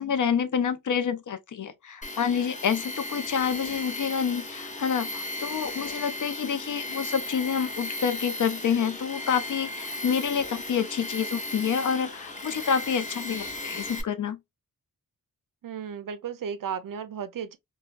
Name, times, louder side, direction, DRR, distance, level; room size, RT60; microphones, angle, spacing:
voice 1, 0.0-14.4, left 7 dB, 55° left, 0.5 m, -28 dB
Tools, 2.0-14.0, left 2 dB, 20° left, 0.7 m, -36 dB
voice 2, 15.6-17.6, right 7 dB, 65° right, 0.5 m, -34 dB
3.1 x 2.2 x 2.4 m
wide cardioid pair, 75°, 36 cm